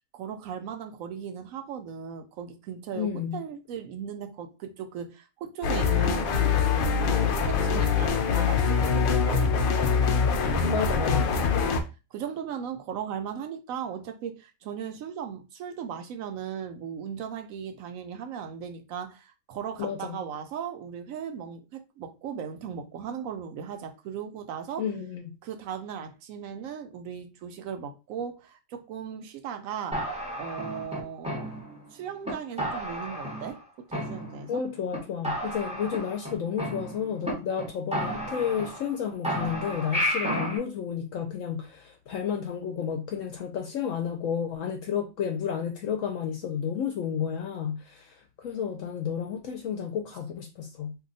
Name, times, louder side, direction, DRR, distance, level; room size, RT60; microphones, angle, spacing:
voice 1, 0.1-9.9 11.6-11.8 12.1-24.8 25.4-30.0 30.4-31.5 31.9-33.6 33.9-34.6, right 7 dB, 75° right, 0.9 m, -37 dB
voice 2, 2.9-3.4 10.7-11.3 19.8-20.2 24.8-25.3 34.5-51.0, left 8 dB, 70° left, 0.9 m, -31 dB
sound 1, 5.6-11.8, left 6 dB, 85° left, 0.4 m, -24 dB
sound 2, 29.9-31.9 32.2-32.3 32.6-33.6 33.9-34.6 34.9-35.0 35.2-37.3 37.6-37.7 37.9-39.0 39.2-40.6, equal, 5° right, 0.8 m, -32 dB
2.8 x 2.2 x 3.8 m
omnidirectional pair, 1.5 m